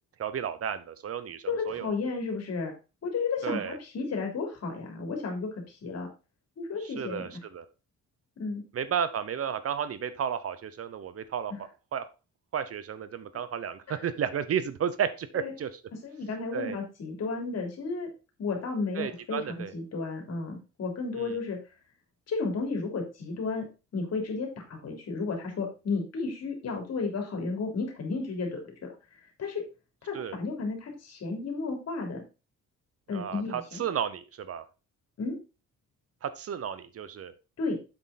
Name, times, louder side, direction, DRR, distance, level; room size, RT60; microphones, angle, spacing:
voice 1, 0.2-1.9 3.4-3.8 6.8-7.7 8.7-11.5 11.9-12.0 12.5-15.8 16.5-16.8 18.9-19.7 21.2-21.4 30.1-30.4 33.1-34.6 36.2-37.3, right 8 dB, 50° right, 14 dB, 0.8 m, -33 dB
voice 2, 1.5-2.7 3.0-6.1 6.6-7.2 8.4-8.6 11.5-11.6 13.9-14.0 15.4-15.5 16.0-18.1 18.4-19.4 19.7-21.6 22.3-23.6 23.9-28.9 29.4-29.6 30.0-32.2 33.1-33.8 35.2-35.4 37.6-37.8, left 4 dB, 55° left, 2 dB, 3.2 m, -33 dB
7.7 x 6.2 x 4.1 m, 0.30 s
cardioid pair, 130°, 30 cm